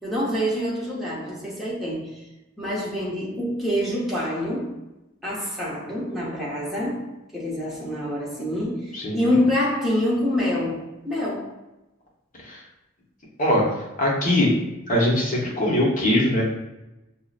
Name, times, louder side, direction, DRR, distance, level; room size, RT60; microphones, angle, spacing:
voice 1, 0.0-2.3 2.6-4.8 5.2-11.6, left 1 dB, ahead, -6 dB, 0.8 m, -26 dB
voice 2, 8.9-9.3 12.4-12.6 13.4-13.6 14.0-14.5 14.9-16.4, left 1 dB, 40° left, -4 dB, 0.9 m, -21 dB
5.5 x 2.0 x 2.4 m, 0.96 s
head